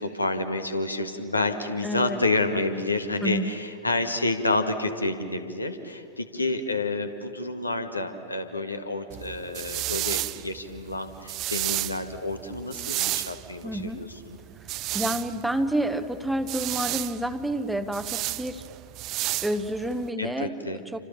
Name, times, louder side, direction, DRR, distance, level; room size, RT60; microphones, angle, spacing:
voice 1, 0.0-14.4 20.2-20.8, left 2 dB, 80° left, 6 dB, 1.8 m, -29 dB
voice 2, 1.8-2.2 3.2-3.5 13.6-14.1 14.6-18.7 19.4-21.0, right 1 dB, 5° right, 8 dB, 1.1 m, -29 dB
sound 1, 9.1-20.1, right 17 dB, 40° right, 0.5 m, -32 dB
29.0 x 25.5 x 7.0 m, 2.5 s
figure-of-eight pair, 90°, 0 cm